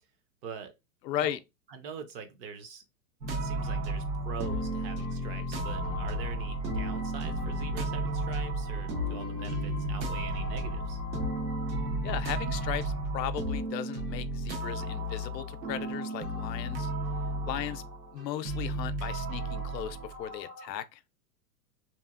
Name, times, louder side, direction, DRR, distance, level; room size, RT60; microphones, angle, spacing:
voice 1, 0.4-0.7 1.2-1.4 1.7-2.8 3.3-11.0 17.5-17.8, right 6 dB, 35° right, 0.5 m, -43 dB
voice 2, 1.0-1.4 12.0-16.9 17.4-17.8 18.1-21.0, left 11 dB, 80° left, 0.5 m, -36 dB
sound 1, 3.2-20.7, right 1 dB, 90° right, 1.0 m, -33 dB
2.9 x 2.4 x 2.4 m
hypercardioid pair, 125°, 49 cm